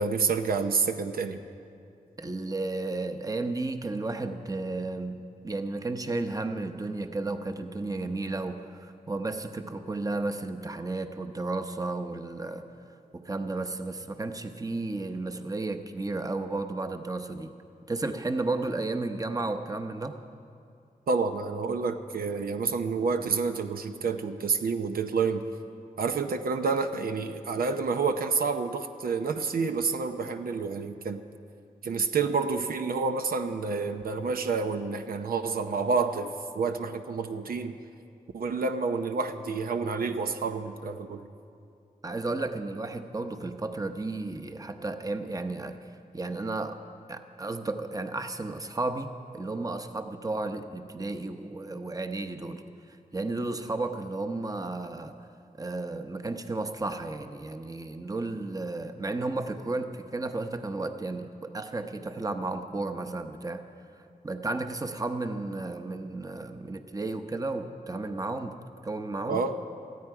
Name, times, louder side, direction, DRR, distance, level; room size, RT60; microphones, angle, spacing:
voice 1, 0.0-1.4 21.1-25.4 26.0-31.2 31.8-37.8 38.3-41.3 69.3-69.6, right 4 dB, 85° right, 7 dB, 0.7 m, -29 dB
voice 2, 2.2-12.6 13.1-17.5 17.9-20.2 42.0-46.8 47.1-52.6 52.9-55.2 55.6-63.6 64.2-68.6 68.8-69.4, right 2 dB, 25° right, 7 dB, 0.9 m, -33 dB
19.0 x 14.0 x 4.8 m, 2.5 s
wide cardioid pair, 80°, 15 cm